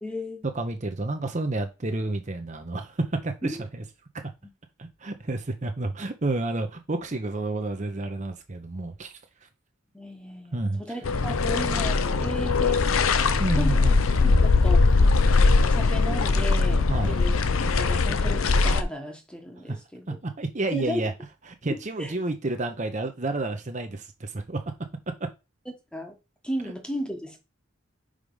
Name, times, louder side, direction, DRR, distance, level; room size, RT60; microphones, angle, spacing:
voice 1, 0.0-0.4 3.4-3.6 9.9-13.1 13.5-13.8 14.2-14.9 15.6-17.4 17.7-20.2 20.7-21.1 21.7-22.1 25.9-26.2 26.4-27.4, equal, 5° left, 1.1 m, -35 dB
voice 2, 0.5-3.8 4.8-9.1 9.4-9.5 10.5-11.0 13.4-14.0 16.9-17.2 19.7-19.8 20.1-21.1 21.4-24.6 26.6-26.7, right 2 dB, 35° right, 0.8 m, -30 dB
sound 1, 11.0-18.8, left 3 dB, 85° left, 0.7 m, -21 dB
5.0 x 4.9 x 5.4 m
head